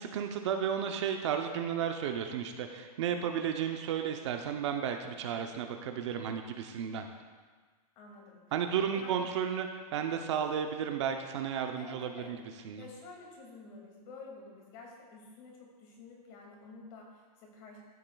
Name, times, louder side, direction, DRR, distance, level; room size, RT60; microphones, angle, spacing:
voice 1, 0.0-7.1 8.5-12.4 12.6-12.8, right 8 dB, 45° right, 5 dB, 0.6 m, -33 dB
voice 2, 8.0-8.4 8.9-9.2 11.8-12.4 12.8-17.8, left 3 dB, 35° left, -1 dB, 2.3 m, -50 dB
13.0 x 7.6 x 2.3 m, 1.5 s
hypercardioid pair, 155°, 20 cm